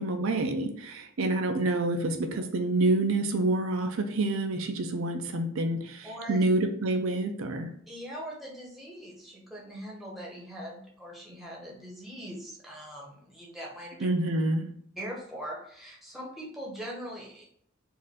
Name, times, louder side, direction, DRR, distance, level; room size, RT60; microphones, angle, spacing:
voice 1, 0.0-7.7 14.0-14.7, right 2 dB, 75° right, 6 dB, 0.5 m, -27 dB
voice 2, 6.0-6.4 7.9-14.1 15.0-17.4, equal, ahead, -4 dB, 0.9 m, -41 dB
4.4 x 2.5 x 3.6 m, 0.64 s
head